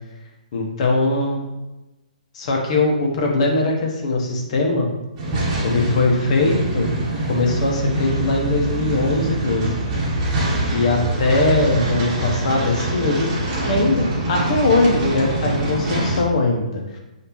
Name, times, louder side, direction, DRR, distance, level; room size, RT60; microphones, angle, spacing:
voice 1, 0.5-1.4 2.3-4.9 5.6-6.9 7.2-9.7 10.7-13.3 13.6-17.0, left 2 dB, 50° left, 0 dB, 1.1 m, -20 dB
sound 1, 5.2-16.2, right 2 dB, 35° right, 1.2 m, -24 dB
5.1 x 2.8 x 3.0 m, 1.0 s
hypercardioid pair, 130°, 4 cm